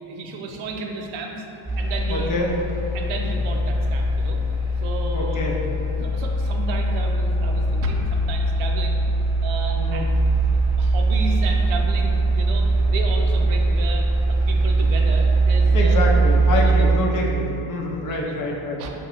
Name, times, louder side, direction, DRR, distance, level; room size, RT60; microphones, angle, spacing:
voice 1, 0.1-1.4 1.8-2.4 2.9-4.4 4.8-5.5 5.9-9.0 9.4-10.1 10.8-16.0 16.5-17.0 18.0-18.5 18.8-18.9, right 3 dB, 80° right, 1 dB, 0.6 m, -32 dB
sound 1, 1.7-17.0, right 2 dB, 5° right, 0.8 m, -21 dB
voice 2, 2.1-2.5 5.1-5.6 9.8-10.1 15.7-18.8, left 2 dB, 45° left, -1 dB, 0.6 m, -26 dB
4.9 x 2.2 x 3.0 m, 2.9 s
supercardioid pair, 80°, 47 cm